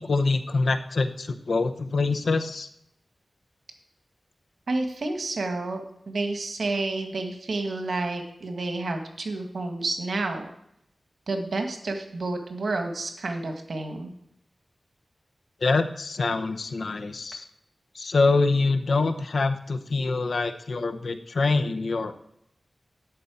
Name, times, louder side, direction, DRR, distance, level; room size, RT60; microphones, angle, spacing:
voice 1, 0.0-2.7 15.6-17.4 17.9-22.2, left 3 dB, 80° left, 8 dB, 0.8 m, -25 dB
voice 2, 4.7-10.5 11.3-14.1, right 2 dB, 85° right, 5 dB, 1.5 m, -30 dB
12.5 x 4.2 x 8.3 m, 0.76 s
wide cardioid pair, 60°, 0 cm